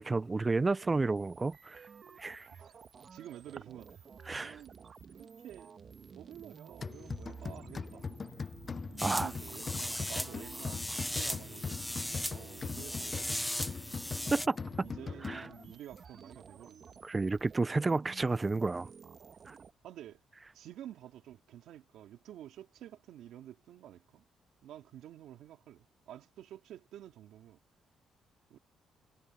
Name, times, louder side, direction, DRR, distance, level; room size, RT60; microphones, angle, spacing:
voice 1, 0.0-1.8 2.2-2.5 4.3-4.6 9.0-9.3 14.3-14.6 15.2-15.5 17.0-18.9 19.5-19.6, right 3 dB, 25° right, 0.5 m, -31 dB
sound 1, 0.6-19.7, right 6 dB, 50° right, 1.5 m, -53 dB
voice 2, 2.5-2.8 3.1-4.1 4.4-4.8 5.1-5.7 6.1-8.1 9.1-13.8 14.8-17.0 17.7-17.9 19.8-20.2 20.5-24.2 24.6-27.6 28.5-28.6, right 11 dB, 80° right, 2.7 m, -50 dB
sound 2, 6.8-15.7, left 5 dB, 35° left, 0.7 m, -41 dB
sound 3, 9.0-14.5, left 1 dB, 5° left, 1.2 m, -38 dB
cardioid pair, 90°, 0 cm